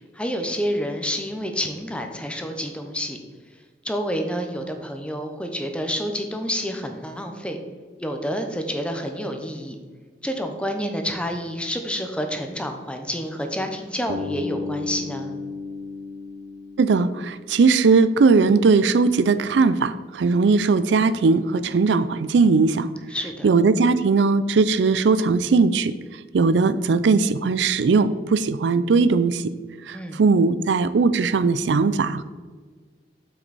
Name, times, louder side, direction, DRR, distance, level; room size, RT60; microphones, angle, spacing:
voice 1, 0.2-3.2 3.8-7.6 8.0-9.8 10.2-15.3 23.1-23.5 29.9-30.2, equal, 5° left, 5 dB, 0.8 m, -28 dB
Bass guitar, 14.1-18.0, left 4 dB, 70° right, 0.8 m, -34 dB
voice 2, 16.8-22.9 23.4-25.9 26.3-29.5 29.9-32.2, right 4 dB, 85° right, 14 dB, 0.4 m, -19 dB
8.0 x 6.0 x 4.1 m, 1.5 s
head